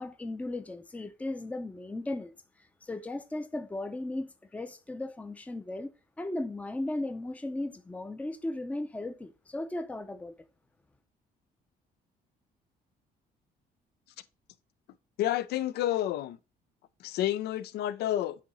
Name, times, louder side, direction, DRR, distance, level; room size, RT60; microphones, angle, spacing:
voice 1, 0.0-2.3 2.8-5.9 6.2-10.3, left 2 dB, 10° left, 0.5 m, -36 dB
voice 2, 15.2-16.4 17.0-18.4, left 13 dB, 70° left, 0.5 m, -29 dB
8.3 x 2.8 x 4.0 m
cardioid pair, 110°, 17 cm